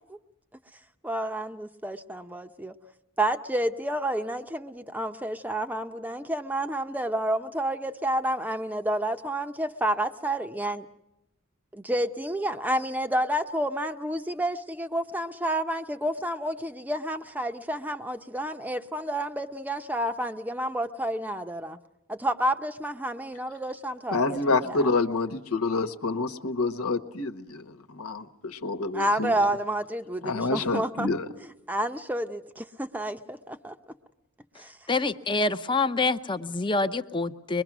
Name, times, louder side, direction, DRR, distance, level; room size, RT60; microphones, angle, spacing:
voice 1, 1.0-2.8 3.2-10.8 11.8-21.8 22.1-24.4 24.6-24.9 28.9-31.1 31.7-33.7 34.6-34.8, right 1 dB, 10° right, 8 dB, 0.8 m, -29 dB
voice 2, 24.1-29.3 30.2-31.2, left 3 dB, 85° left, 7 dB, 1.3 m, -28 dB
voice 3, 34.9-37.6, left 3 dB, 20° left, 10 dB, 0.7 m, -26 dB
24.5 x 22.0 x 6.1 m, 0.91 s
head